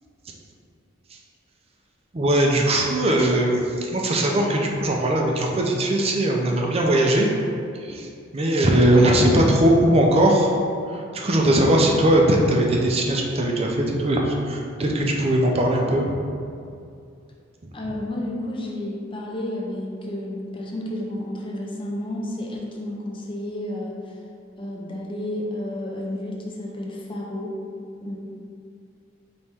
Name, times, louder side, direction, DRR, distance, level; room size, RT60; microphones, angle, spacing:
voice 1, 2.1-7.3 7.8-8.1 8.3-10.5 10.9-16.2, right 1 dB, 30° right, 0 dB, 0.5 m, -20 dB
voice 2, 17.7-24.0 24.6-27.5 28.0-28.2, left 1 dB, 25° left, -2 dB, 0.6 m, -31 dB
4.2 x 3.1 x 3.5 m, 2.4 s
head